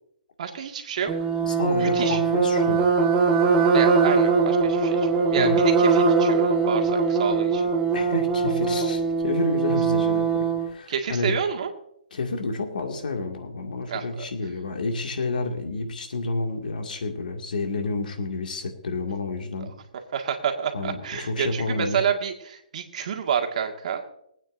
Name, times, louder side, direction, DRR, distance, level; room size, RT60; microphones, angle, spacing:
voice 1, 0.4-1.1 1.8-2.2 3.7-7.6 10.9-11.7 13.9-14.3 20.1-24.1, right 7 dB, 55° right, 4 dB, 1.8 m, -29 dB
sound 1, 1.1-10.7, right 4 dB, 20° right, 1.3 m, -21 dB
voice 2, 1.4-2.8 5.4-5.7 7.9-11.3 12.1-19.7 20.7-22.0, left 3 dB, 80° left, 3 dB, 2.2 m, -29 dB
22.5 x 9.0 x 2.6 m, 0.72 s
hypercardioid pair, 150°, 5 cm